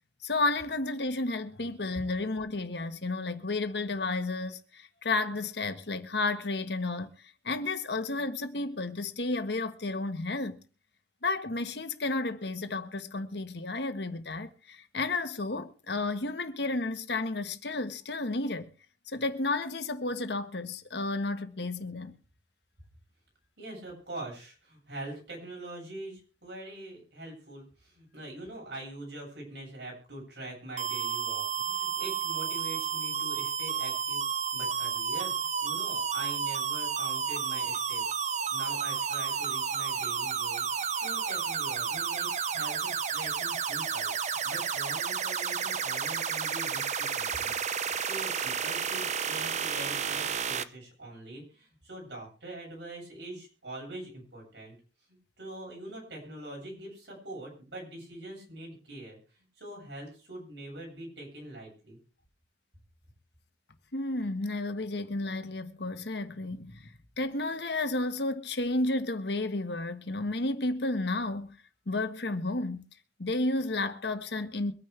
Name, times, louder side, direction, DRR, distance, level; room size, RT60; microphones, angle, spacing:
voice 1, 0.2-7.1 7.4-10.6 11.2-18.7 19.1-22.2 63.9-66.9 67.2-71.6 71.9-72.8 73.2-74.7, left 2 dB, 70° left, 1.4 m, -32 dB
voice 2, 23.6-34.2 34.5-44.1 44.4-54.7 55.1-62.0, right 1 dB, 85° right, 7.9 m, -44 dB
sound 1, 30.8-50.6, right 7 dB, 40° right, 0.7 m, -31 dB
24.0 x 9.6 x 3.4 m
head